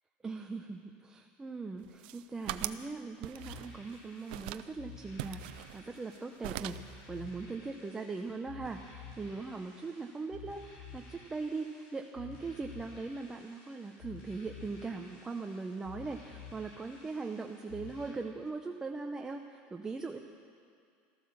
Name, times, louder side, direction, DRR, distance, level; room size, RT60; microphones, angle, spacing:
voice 1, 0.2-20.2, right 3 dB, 15° right, 3 dB, 0.6 m, -40 dB
sound 1, 1.8-2.9 3.2-4.0 4.3-4.7 5.2-6.2 6.4-6.9, right 15 dB, 75° right, 0.6 m, -41 dB
sound 2, 3.3-18.1, left 4 dB, 70° left, 5.0 m, -51 dB
14.0 x 13.5 x 7.1 m, 2.2 s
supercardioid pair, 145°, 5 cm